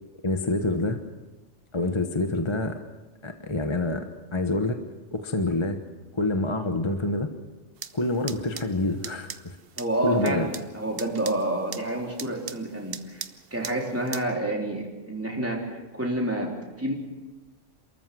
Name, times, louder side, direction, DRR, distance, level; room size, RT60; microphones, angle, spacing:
voice 1, 0.2-1.0 1.7-2.8 3.2-4.0 4.3-4.8 5.1-5.8 6.1-7.3 7.9-9.6 10.0-10.5, left 2 dB, 25° left, 6 dB, 1.1 m, -26 dB
sound 1, 7.8-14.2, right 7 dB, 55° right, 1.0 m, -41 dB
voice 2, 9.8-13.2 13.5-16.9, right 1 dB, 10° right, -1 dB, 3.6 m, -29 dB
27.5 x 14.0 x 7.7 m, 1.2 s
omnidirectional pair, 1.2 m